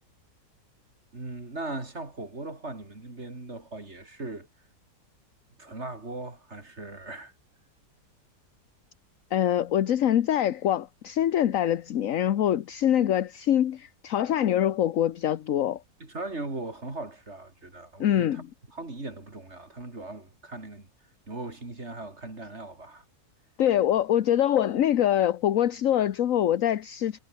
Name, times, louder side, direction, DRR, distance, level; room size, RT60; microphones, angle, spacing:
voice 1, 1.1-4.5 5.6-7.3 16.0-18.4 18.7-20.9 21.3-23.0, right 2 dB, 40° right, 4.1 m, -39 dB
voice 2, 9.3-15.8 18.0-18.5 23.6-27.2, left 11 dB, 60° left, 1.1 m, -24 dB
omnidirectional pair, 1.8 m